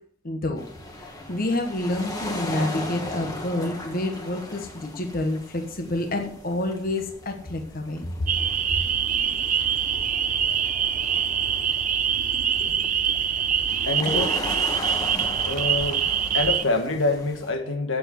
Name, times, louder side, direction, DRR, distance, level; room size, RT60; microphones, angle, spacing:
voice 1, 0.2-0.7 1.0-8.3, left 1 dB, 45° left, 1.3 m, -28 dB
sound 1, 0.6-17.5, left 1 dB, 20° left, 1.6 m, -37 dB
sound 2, 8.3-16.6, right 8 dB, 40° right, 0.6 m, -24 dB
voice 2, 12.6-13.0 13.9-14.4 15.4-16.0 16.3-18.0, left 2 dB, 70° left, 1.6 m, -26 dB
8.1 x 7.8 x 8.0 m
head